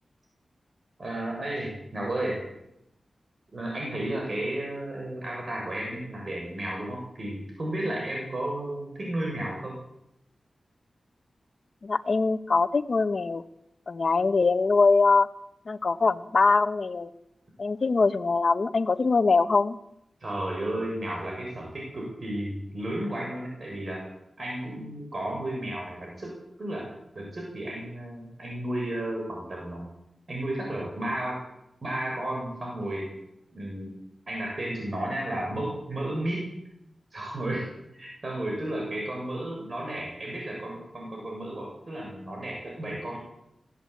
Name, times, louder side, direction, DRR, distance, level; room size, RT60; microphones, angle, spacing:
voice 1, 1.0-2.4 3.5-9.8 20.2-24.0 24.4-26.3 26.6-26.9 27.2-29.9 30.3-31.4 31.8-33.1 33.5-34.0 34.3-36.5 37.1-43.2, right 1 dB, 45° right, -1 dB, 7.2 m, -33 dB
voice 2, 11.8-13.4 13.9-15.3 15.7-17.1 17.6-19.8, left 4 dB, 55° left, 10 dB, 1.2 m, -23 dB
21.5 x 17.0 x 8.7 m, 0.85 s
wide cardioid pair, 95°, 0 cm